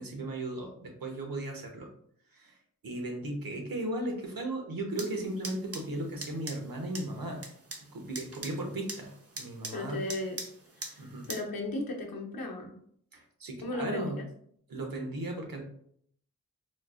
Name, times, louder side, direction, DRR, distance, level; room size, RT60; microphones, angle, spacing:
voice 1, 0.0-1.9 2.3-2.6 2.8-7.5 7.9-9.1 9.4-10.0 11.0-11.3 13.1-14.2 14.7-15.6, right 1 dB, 75° right, 2 dB, 0.9 m, -36 dB
sound 1, 4.9-11.4, right 2 dB, 40° right, 0.7 m, -44 dB
voice 2, 9.7-10.4 10.8-12.7 13.6-14.2, left 2 dB, 80° left, 1 dB, 0.7 m, -36 dB
4.3 x 2.4 x 2.4 m, 0.65 s
wide cardioid pair, 60°, 35 cm